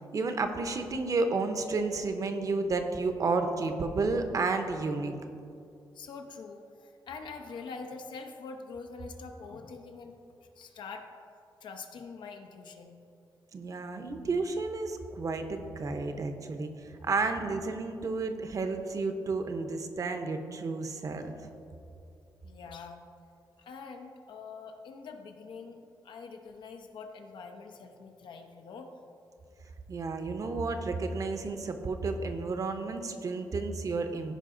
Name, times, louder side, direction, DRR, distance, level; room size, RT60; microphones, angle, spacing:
voice 1, 0.1-5.2 13.5-21.4 29.9-34.3, right 3 dB, 45° right, 7 dB, 0.8 m, -31 dB
voice 2, 5.9-10.2 10.5-11.1 11.6-13.0 17.0-17.1 22.4-23.0 23.6-25.8 26.0-28.9, left 4 dB, 75° left, 4 dB, 0.9 m, -44 dB
15.5 x 5.2 x 3.8 m, 2.6 s
cardioid pair, 105°, 8 cm